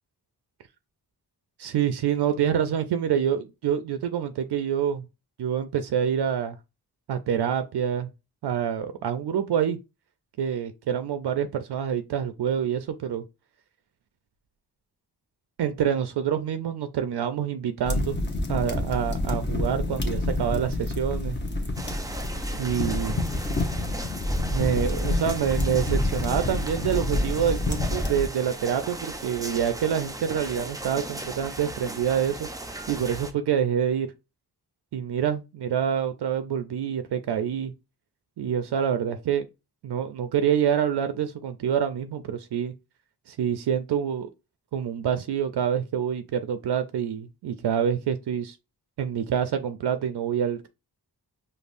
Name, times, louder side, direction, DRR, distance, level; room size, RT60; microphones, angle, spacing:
voice 1, 1.6-5.1 5.4-6.6 7.1-8.1 8.4-9.8 10.4-13.2 15.6-18.2 18.5-21.4 22.6-23.2 24.5-32.5 32.9-34.1 34.9-37.7 38.4-39.5 39.8-42.7 43.3-44.3 44.7-48.6 49.0-50.7, right 8 dB, 80° right, 0.5 m, -26 dB
sound 1, 17.8-28.3, left 1 dB, 30° left, 0.8 m, -28 dB
sound 2, 21.8-33.3, right 2 dB, 10° right, 0.4 m, -37 dB
5.3 x 2.1 x 2.5 m
wide cardioid pair, 100°, 39 cm